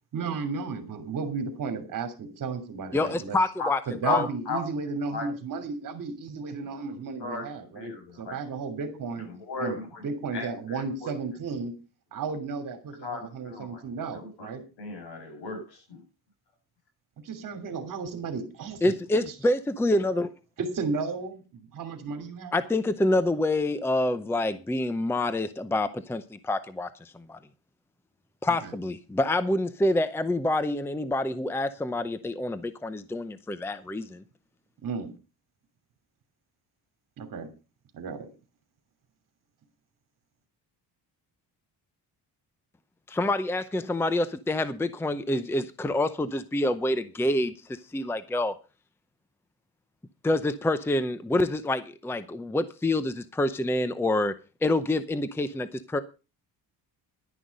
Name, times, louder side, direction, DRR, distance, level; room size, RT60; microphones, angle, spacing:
voice 1, 0.1-3.4 3.9-9.3 9.6-9.8 10.0-11.7 12.1-14.6 17.2-19.3 20.6-22.6 28.5-28.7 34.8-35.1 37.2-37.5 37.9-38.3, right 4 dB, 50° right, 3.0 m, -34 dB
voice 2, 2.9-4.3 18.8-20.3 22.5-27.4 28.4-34.2 43.1-47.5 47.9-48.6 50.2-54.3 54.6-56.0, left 1 dB, 5° left, 0.6 m, -27 dB
voice 3, 4.1-4.6 5.1-5.3 7.2-7.4 7.8-8.4 9.5-10.0 10.3-11.1 13.0-13.8 14.1-16.0, left 3 dB, 85° left, 7.2 m, -36 dB
11.5 x 10.0 x 5.3 m
cardioid pair, 150°, 40 cm